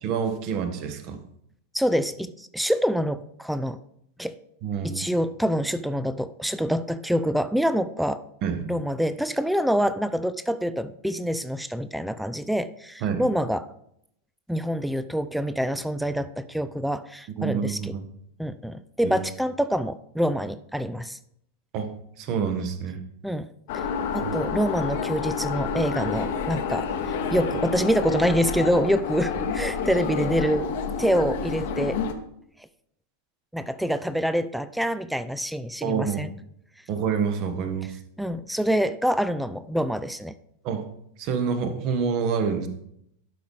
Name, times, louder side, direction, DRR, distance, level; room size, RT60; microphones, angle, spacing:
voice 1, 0.0-1.2 4.6-5.1 8.4-8.6 13.0-13.2 17.3-18.0 19.0-19.2 21.7-23.0 24.2-24.3 35.8-36.2 36.9-38.0 40.6-40.9 41.2-42.7, right 6 dB, 40° right, 8 dB, 1.0 m, -27 dB
voice 2, 1.7-3.8 4.2-4.4 4.8-8.2 8.7-13.7 14.5-17.9 18.4-21.2 23.2-23.5 23.7-23.8 24.1-32.0 33.5-36.3 38.2-40.3, equal, ahead, 13 dB, 0.3 m, -26 dB
sound 1, 23.7-32.1, left 5 dB, 50° left, 0.8 m, -29 dB
12.0 x 4.9 x 3.5 m, 0.74 s
figure-of-eight pair, 90°, 0 cm